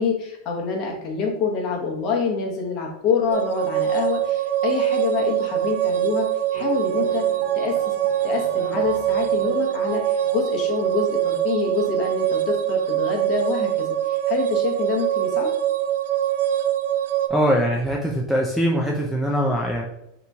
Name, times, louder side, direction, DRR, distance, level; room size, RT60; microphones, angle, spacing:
voice 1, 0.0-7.2 7.5-7.9 8.2-15.5, left 5 dB, 35° left, 0 dB, 0.9 m, -26 dB
sound 1, 3.3-17.3, right 11 dB, 80° right, 0.3 m, -23 dB
sound 2, 6.5-11.2, right 3 dB, 65° right, 0.7 m, -39 dB
voice 2, 17.3-19.8, equal, ahead, -4 dB, 0.4 m, -22 dB
3.9 x 2.9 x 3.5 m, 0.82 s
supercardioid pair, 165°, 0 cm